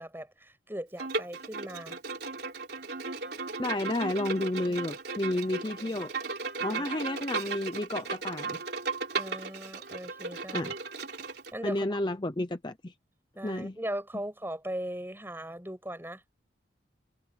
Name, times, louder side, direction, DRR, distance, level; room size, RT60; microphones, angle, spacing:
voice 1, 0.0-2.0 4.7-4.8 5.8-5.9 6.8-6.9 9.2-10.7 11.5-12.0 13.4-16.2, right 1 dB, 10° right, 7.7 m, -39 dB
Bowed string instrument, 1.0-11.5, right 4 dB, 55° right, 4.2 m, -36 dB
voice 2, 3.6-6.1 6.6-8.6 10.5-10.7 11.6-12.9 13.4-13.8, left 1 dB, 25° left, 0.8 m, -31 dB
head